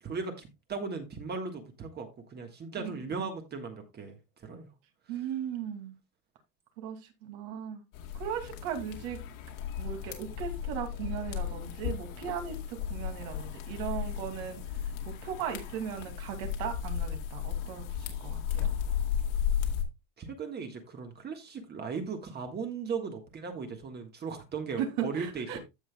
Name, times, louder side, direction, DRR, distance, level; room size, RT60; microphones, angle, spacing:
voice 1, 0.0-4.7 20.2-25.6, right 5 dB, 25° right, 1.5 m, -37 dB
voice 2, 5.1-6.0 6.8-7.8 8.1-9.2 9.8-14.6 15.1-18.7 24.8-25.6, right 8 dB, 70° right, 2.5 m, -37 dB
sound 1, 7.9-19.8, left 9 dB, 80° left, 2.4 m, -35 dB
15.0 x 5.6 x 2.2 m
cardioid pair, 150°, 40 cm